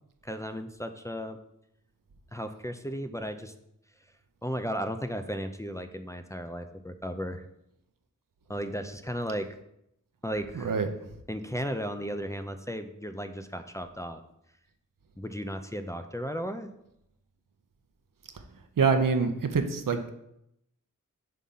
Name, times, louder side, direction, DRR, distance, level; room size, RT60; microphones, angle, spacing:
voice 1, 0.2-1.4 2.3-3.5 4.4-7.4 8.5-9.5 10.2-10.8 11.3-14.2 15.2-16.7, equal, 10° left, 6 dB, 0.5 m, -35 dB
voice 2, 10.6-10.9 18.8-20.1, right 5 dB, 80° right, 7 dB, 0.7 m, -25 dB
5.7 x 3.6 x 5.4 m, 0.80 s
cardioid pair, 50°, 33 cm